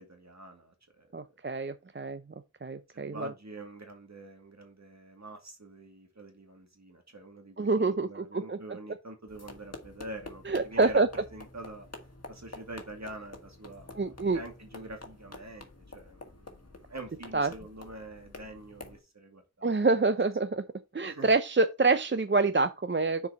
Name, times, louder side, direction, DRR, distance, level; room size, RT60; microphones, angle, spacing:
voice 1, 0.0-1.3 2.9-11.9 12.3-19.8 21.0-21.3, right 1 dB, 65° right, 2.4 m, -46 dB
voice 2, 1.1-2.2 2.6-3.3 7.6-8.6 10.5-11.1 14.0-14.4 17.3-17.5 19.6-20.6 20.9-23.3, right 3 dB, 40° right, 0.6 m, -26 dB
sound 1, 9.3-19.0, left 2 dB, 55° left, 1.8 m, -49 dB
6.8 x 4.8 x 4.9 m
wide cardioid pair, 50°, 30 cm